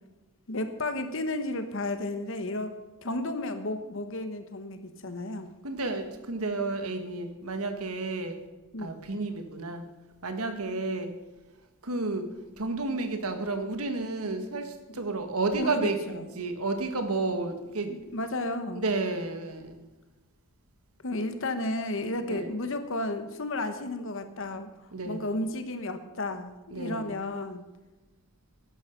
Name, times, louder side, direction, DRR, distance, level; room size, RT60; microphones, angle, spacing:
voice 1, 0.5-2.7 3.0-5.5 8.7-9.0 15.6-16.3 17.9-18.9 21.0-24.7 25.0-27.6, left 2 dB, 60° left, 9 dB, 1.2 m, -33 dB
voice 2, 5.6-8.4 8.8-9.8 10.2-11.1 11.8-12.2 12.6-18.0 18.7-19.9 22.3-22.5 24.9-25.2 26.7-27.1, right 3 dB, 80° right, 7 dB, 1.6 m, -31 dB
12.0 x 10.5 x 5.3 m, 1.1 s
head